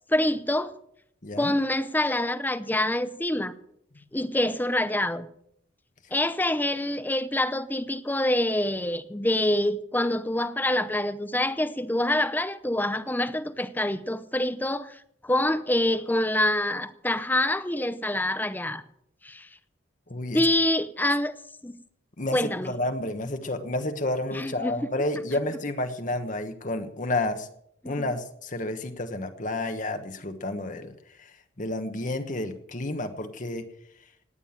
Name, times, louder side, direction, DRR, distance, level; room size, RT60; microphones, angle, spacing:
voice 1, 0.1-0.7 1.4-3.5 4.1-5.3 6.1-18.8 19.2-19.5 20.3-21.3 21.6-21.7 22.3-22.7 24.3-24.7 27.8-28.1, left 1 dB, 10° left, 0.6 m, -26 dB
voice 2, 1.2-1.5 20.1-20.5 22.2-27.5 27.8-30.9 31.2-33.7, left 2 dB, 40° left, 1.2 m, -30 dB
18.5 x 9.4 x 7.2 m
head